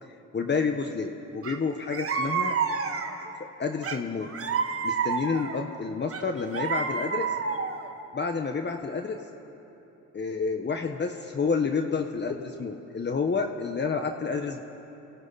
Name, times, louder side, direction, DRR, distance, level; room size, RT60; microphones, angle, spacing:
voice 1, 0.0-2.5 3.6-4.3 4.8-7.4 8.1-9.2 10.1-14.6, left 5 dB, 35° left, 4 dB, 1.5 m, -29 dB
sound 1, 1.4-1.6 1.9-3.3 3.8-5.6 6.1-7.9, right 5 dB, 45° right, 1.8 m, -29 dB
29.5 x 28.5 x 4.3 m, 3.0 s
cardioid pair, 90°, 30 cm